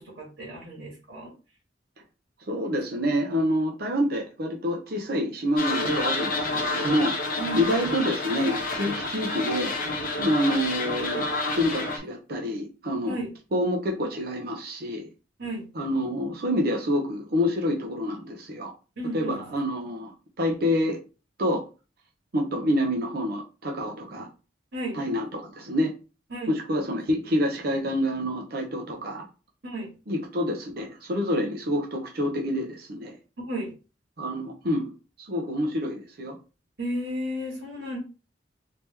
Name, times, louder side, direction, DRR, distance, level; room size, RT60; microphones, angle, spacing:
voice 1, 0.0-1.3 7.4-7.7 13.1-13.3 15.4-15.6 19.0-19.6 24.7-25.0 26.3-26.5 29.6-29.9 33.5-33.7 36.8-38.0, equal, 75° right, -5 dB, 1.8 m, -33 dB
voice 2, 2.5-7.2 7.5-9.8 10.2-11.2 11.6-13.2 13.5-15.1 15.8-18.7 19.1-20.1 20.4-21.0 21.4-21.6 22.3-24.3 24.9-25.9 26.5-29.3 30.1-33.2 34.2-34.9 35.2-36.4, equal, 55° right, 1 dB, 0.7 m, -27 dB
sound 1, 5.6-12.0, left 2 dB, 50° left, 0.9 m, -29 dB
3.4 x 2.9 x 3.3 m, 0.33 s
head